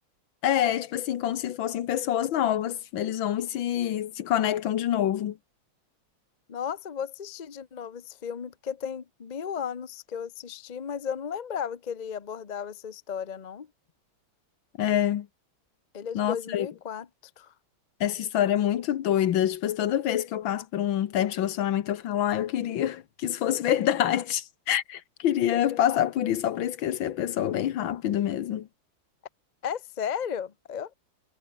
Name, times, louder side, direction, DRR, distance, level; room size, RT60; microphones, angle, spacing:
voice 1, 0.4-5.4 14.8-15.3 16.1-16.7 18.0-28.7, left 11 dB, 70° left, 1.7 m, -26 dB
voice 2, 6.5-13.7 15.9-17.1 17.4-17.5 29.6-30.9, left 7 dB, 40° left, 0.6 m, -35 dB
omnidirectional pair, 2.2 m